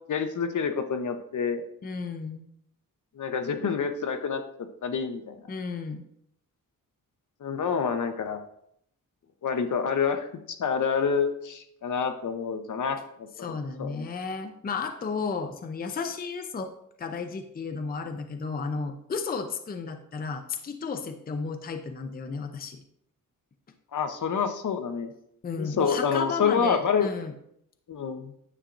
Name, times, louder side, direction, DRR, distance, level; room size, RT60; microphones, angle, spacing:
voice 1, 0.1-1.6 3.1-4.4 4.8-5.4 7.4-8.4 9.4-10.3 10.6-14.1 23.9-25.1 25.6-27.1 27.9-28.3, left 6 dB, 60° left, 8 dB, 0.8 m, -27 dB
voice 2, 1.8-2.5 5.5-6.0 13.4-16.7 17.0-22.8 25.4-27.3, left 5 dB, 25° left, 7 dB, 0.5 m, -33 dB
9.9 x 7.2 x 2.5 m, 0.73 s
wide cardioid pair, 140°, 34 cm